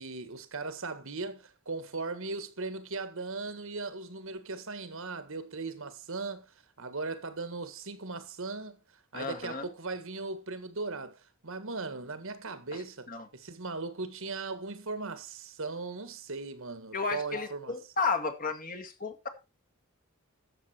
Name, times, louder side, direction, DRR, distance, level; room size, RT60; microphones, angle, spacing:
voice 1, 0.0-8.8 9.1-17.7, right 3 dB, 65° right, 1.7 m, -38 dB
voice 2, 9.1-9.7 12.7-12.8 13.1-13.3 16.9-19.3, left 4 dB, 40° left, 2.0 m, -33 dB
13.0 x 7.3 x 4.4 m
head